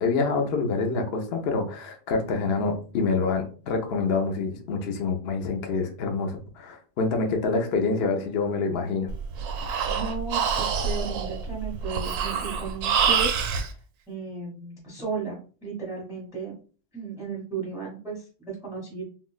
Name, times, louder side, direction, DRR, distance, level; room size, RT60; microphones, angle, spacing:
voice 1, 0.0-9.1, left 4 dB, 55° left, 3 dB, 0.7 m, -26 dB
Breathing, 9.1-13.7, right 6 dB, 90° right, 1.1 m, -26 dB
voice 2, 9.9-13.7 14.1-16.6 16.9-19.0, right 5 dB, 5° right, -4 dB, 0.7 m, -35 dB
3.6 x 2.4 x 2.3 m, 0.39 s
omnidirectional pair, 1.6 m